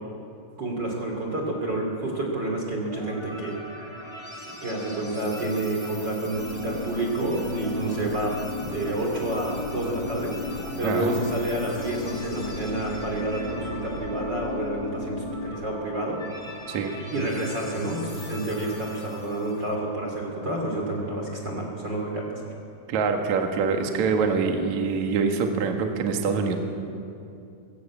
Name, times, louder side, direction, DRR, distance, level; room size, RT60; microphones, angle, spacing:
voice 1, 0.6-3.6 4.6-16.2 17.1-22.4, right 2 dB, 30° right, 0 dB, 2.5 m, -29 dB
sound 1, 2.9-19.8, equal, 15° left, 3.3 m, -42 dB
sound 2, 6.3-15.4, left 3 dB, 45° left, 3.8 m, -35 dB
voice 2, 10.8-11.2 16.7-16.9 22.9-26.6, right 5 dB, 60° right, 3 dB, 2.0 m, -25 dB
22.0 x 16.5 x 8.4 m, 2.5 s
omnidirectional pair, 5.8 m